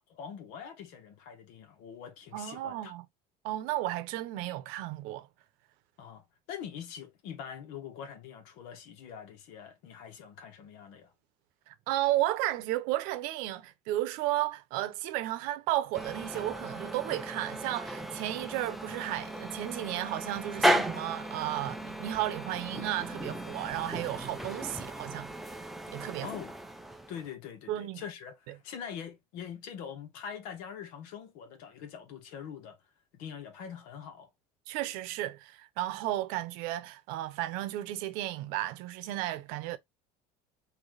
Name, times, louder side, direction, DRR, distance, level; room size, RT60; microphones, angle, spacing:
voice 1, 0.0-2.9 6.0-11.1 26.2-26.5 27.1-32.8 33.1-34.3, left 8 dB, 70° left, 1.3 m, -44 dB
voice 2, 2.3-3.0 3.4-5.3 11.7-26.3 27.7-28.0 34.7-39.8, right 15 dB, 70° right, 0.7 m, -33 dB
sound 1, 15.9-27.3, equal, ahead, 0.4 m, -35 dB
4.0 x 2.7 x 3.3 m
cardioid pair, 160°, 15 cm